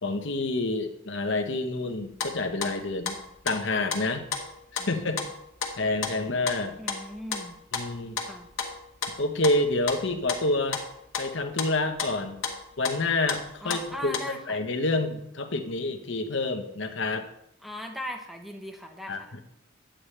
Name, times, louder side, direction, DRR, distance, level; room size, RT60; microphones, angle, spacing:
voice 1, 0.0-3.2 3.4-4.3 4.7-5.2 5.8-6.7 7.7-8.2 9.2-10.8 11.2-12.4 12.8-17.3 19.1-19.4, left 2 dB, 60° left, 5 dB, 1.0 m, -28 dB
sound 1, 1.9-4.0 4.3-5.7 6.0-6.6 6.9-7.4 7.7-8.3 8.6-9.1 9.4-10.4 10.7-10.9 11.1-11.7 12.0-12.2 12.4-12.6 12.8-13.0 13.3-13.4 13.7-13.9 14.1-14.2, left 5 dB, 75° left, 1.5 m, -32 dB
voice 2, 6.8-7.5 8.3-8.5 13.6-14.6 17.6-19.3, equal, ahead, 3 dB, 0.9 m, -39 dB
10.0 x 8.7 x 3.3 m, 0.79 s
head